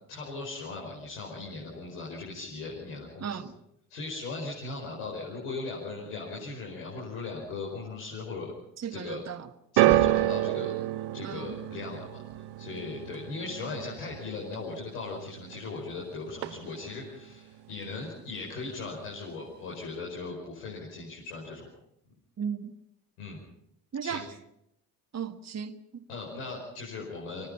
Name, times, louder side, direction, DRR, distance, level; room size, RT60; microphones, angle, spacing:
voice 1, 0.1-3.4 3.9-8.5 8.9-9.2 9.7-10.7 11.1-21.6 23.2-23.4 24.0-24.2 26.1-27.5, left 3 dB, 75° left, 5.5 m, -38 dB
voice 2, 3.2-3.5 8.8-9.5 11.2-11.5 22.4-22.8 23.9-24.3 25.1-26.0, right 7 dB, 35° right, 1.5 m, -36 dB
sound 1, 9.8-16.0 16.3-17.0 17.7-17.8, right 15 dB, 60° right, 1.0 m, -29 dB
24.5 x 19.5 x 5.8 m
hypercardioid pair, 50°, 46 cm